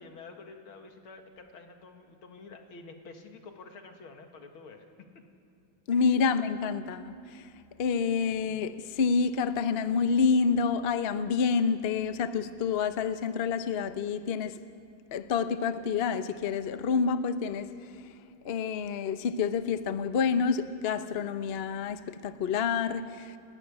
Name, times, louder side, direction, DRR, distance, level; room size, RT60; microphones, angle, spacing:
voice 1, 0.0-5.2 5.9-6.1, left 4 dB, 85° left, 2.6 m, -49 dB
voice 2, 5.9-7.5 7.8-14.6 15.1-17.9 18.4-23.4, left 5 dB, 55° left, 0.6 m, -28 dB
29.5 x 12.0 x 9.7 m
omnidirectional pair, 2.2 m